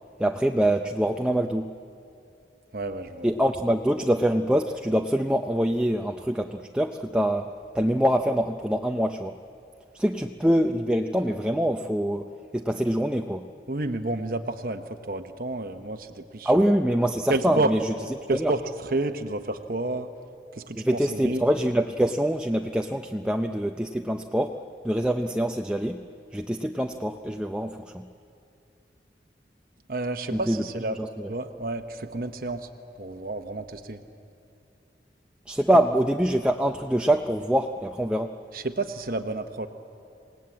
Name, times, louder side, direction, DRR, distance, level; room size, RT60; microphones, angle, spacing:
voice 1, 0.2-1.8 3.2-9.4 9.9-13.5 16.4-17.9 18.3-18.5 20.8-24.6 24.8-26.0 26.3-28.1 30.3-30.6 30.9-31.3 35.5-38.4, equal, 5° right, 4 dB, 0.6 m, -25 dB
voice 2, 2.7-3.3 13.7-16.5 17.3-17.7 18.3-20.1 20.5-21.4 29.9-31.0 31.3-32.7 33.0-34.0 38.5-39.7, right 2 dB, 50° right, 6 dB, 1.0 m, -30 dB
28.0 x 19.0 x 8.6 m, 2.5 s
head